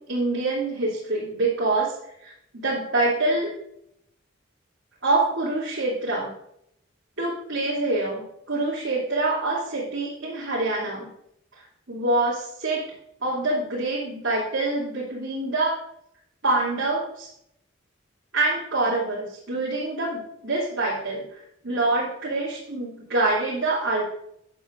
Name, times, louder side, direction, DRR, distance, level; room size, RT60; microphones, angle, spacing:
voice 1, 0.0-3.5 5.0-6.3 7.2-11.1 11.9-12.8 13.2-15.8 16.4-17.3 18.3-21.2 21.6-24.0, right 2 dB, 80° right, -8 dB, 3.0 m, -25 dB
11.5 x 9.7 x 2.6 m, 0.76 s
head